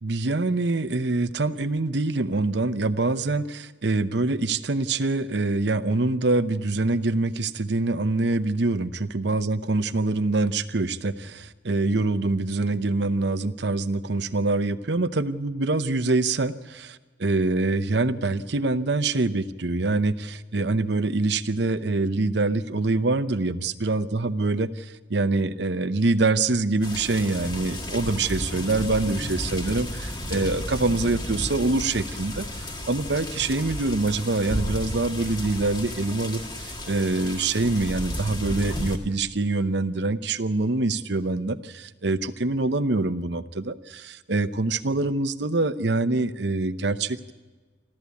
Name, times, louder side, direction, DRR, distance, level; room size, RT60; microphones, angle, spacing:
voice 1, 0.0-47.3, right 2 dB, 60° right, 12 dB, 0.8 m, -25 dB
sound 1, 26.8-39.0, left 1 dB, 25° left, 1.9 m, -33 dB
28.5 x 13.0 x 8.4 m, 1.4 s
head